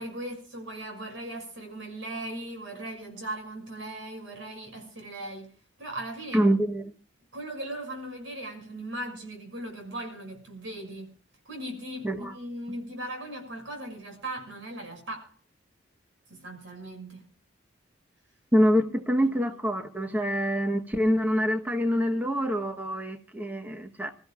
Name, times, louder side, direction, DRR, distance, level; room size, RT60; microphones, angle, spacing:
voice 1, 0.0-5.5 5.8-6.5 7.3-11.1 11.4-15.3 16.3-17.2 19.2-19.4 20.0-20.2, right 1 dB, 80° right, 6.4 m, -38 dB
voice 2, 6.3-6.9 12.0-12.3 18.5-24.1, equal, 10° right, 1.0 m, -25 dB
27.5 x 14.5 x 2.4 m
head